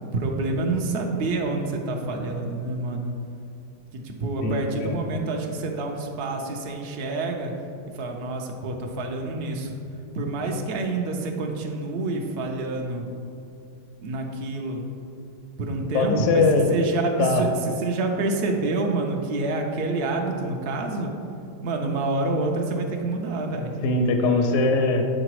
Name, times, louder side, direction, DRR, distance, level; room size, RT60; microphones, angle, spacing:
voice 1, 0.0-3.1 3.9-7.5 7.9-9.8 10.1-13.0 14.0-14.8 15.6-16.4 16.7-21.1 21.6-23.7, right 2 dB, 85° right, 2 dB, 0.5 m, -27 dB
voice 2, 4.4-4.9 15.9-16.6 17.2-17.4 23.8-25.1, left 3 dB, 65° left, 4 dB, 0.7 m, -21 dB
6.7 x 3.9 x 4.6 m, 2.6 s
omnidirectional pair, 1.8 m